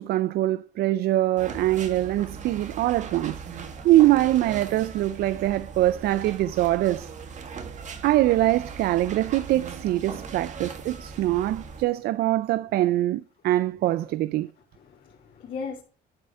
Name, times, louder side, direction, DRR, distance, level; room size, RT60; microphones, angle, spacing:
voice 1, 0.0-3.6 3.8-7.1 8.0-14.5, right 15 dB, 70° right, 0.5 m, -23 dB
sound 1, 1.4-11.8, right 5 dB, 45° right, 1.9 m, -39 dB
voice 2, 10.8-11.5 14.7-15.8, left 5 dB, 55° left, 2.7 m, -39 dB
12.0 x 4.9 x 5.7 m
cardioid pair, 110°, 17 cm